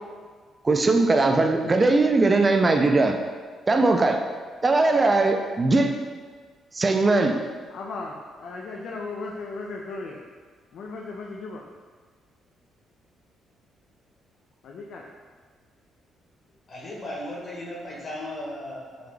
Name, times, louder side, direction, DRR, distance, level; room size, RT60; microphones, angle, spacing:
voice 1, 0.6-3.2 3.7-4.2 4.6-5.9 6.7-7.3, right 3 dB, 30° right, 4 dB, 0.4 m, -20 dB
voice 2, 7.7-10.2 10.7-11.6 14.6-15.0, left 3 dB, 70° left, -1 dB, 0.4 m, -36 dB
voice 3, 16.7-19.1, left 1 dB, 45° left, -4 dB, 1.2 m, -36 dB
3.9 x 2.9 x 3.2 m, 1.5 s
cardioid pair, 90°, 0 cm